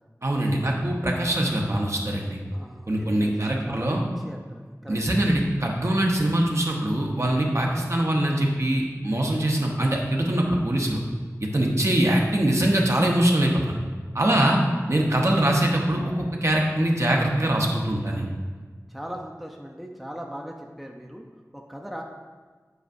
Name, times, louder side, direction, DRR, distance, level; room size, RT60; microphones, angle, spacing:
voice 1, 0.2-2.4 2.9-4.0 4.9-11.0 11.4-13.8 14.1-14.6 14.9-18.3, right 1 dB, 50° right, 0 dB, 0.9 m, -23 dB
voice 2, 2.5-3.3 3.6-5.0 18.9-21.2 21.5-22.0, equal, ahead, 1 dB, 0.5 m, -39 dB
8.1 x 4.6 x 2.6 m, 1.5 s
wide cardioid pair, 45°, 6 cm